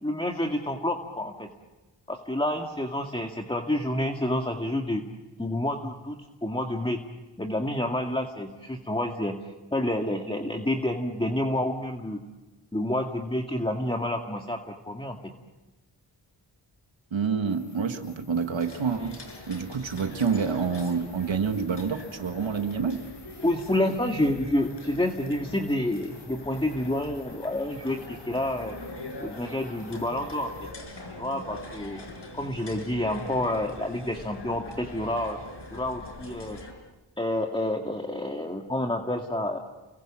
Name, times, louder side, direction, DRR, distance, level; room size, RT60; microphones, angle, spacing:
voice 1, 0.0-1.5 2.1-5.0 5.4-7.0 7.4-9.3 9.7-12.2 12.7-15.2 23.4-28.8 29.2-30.5 31.2-32.0 32.3-35.4 35.7-36.6 37.2-39.6, left 1 dB, 10° left, 3 dB, 2.0 m, -29 dB
sound 1, 16.7-16.8 17.4-30.7, left 4 dB, 40° left, 7.9 m, -55 dB
voice 2, 17.1-19.2 19.5-23.0, right 5 dB, 85° right, 6 dB, 1.7 m, -28 dB
sound 2, 18.6-36.7, left 2 dB, 65° left, 5.6 m, -43 dB
30.0 x 23.5 x 7.5 m, 1.2 s
wide cardioid pair, 65°, 45 cm